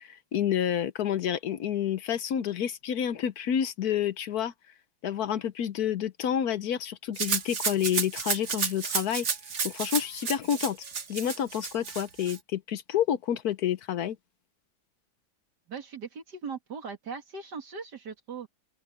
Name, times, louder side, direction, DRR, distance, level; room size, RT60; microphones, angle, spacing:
voice 1, 0.0-4.5 5.0-9.3 9.6-10.8 11.1-14.2, left 9 dB, 70° left, 1.3 m, -29 dB
Rattle (instrument), 7.2-12.4, right 5 dB, 45° right, 1.6 m, -31 dB
voice 2, 15.7-18.5, right 5 dB, 90° right, 2.9 m, -39 dB
open air
omnidirectional pair, 1.7 m